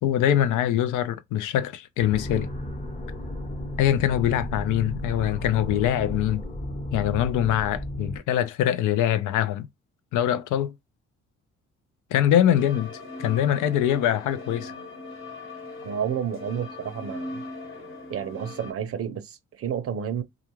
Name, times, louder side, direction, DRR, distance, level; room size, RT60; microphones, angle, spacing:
voice 1, 0.0-2.5 3.8-6.4 6.9-9.7 10.1-10.7 12.1-14.7, left 11 dB, 80° left, 0.4 m, -23 dB
sound 1, 2.0-8.2, equal, 25° left, 0.9 m, -34 dB
sound 2, 12.5-18.7, left 2 dB, 45° left, 1.1 m, -39 dB
voice 2, 15.8-17.4 18.1-20.2, right 8 dB, 50° right, 0.5 m, -30 dB
2.4 x 2.3 x 3.0 m
cardioid pair, 90°, 30 cm